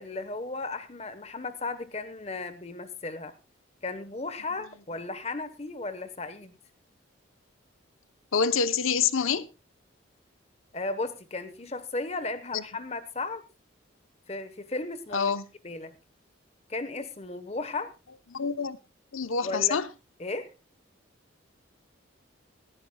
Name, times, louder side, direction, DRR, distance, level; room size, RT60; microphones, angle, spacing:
voice 1, 0.0-3.3 3.8-6.6 10.7-13.4 14.3-15.3 15.6-15.9 16.7-17.9 19.4-19.8 20.2-20.5, left 3 dB, 30° left, 1.1 m, -35 dB
voice 2, 8.3-9.5 12.5-12.6 15.1-15.4 18.3-18.8 19.1-19.9, left 6 dB, 90° left, 0.8 m, -26 dB
18.0 x 14.5 x 2.3 m
head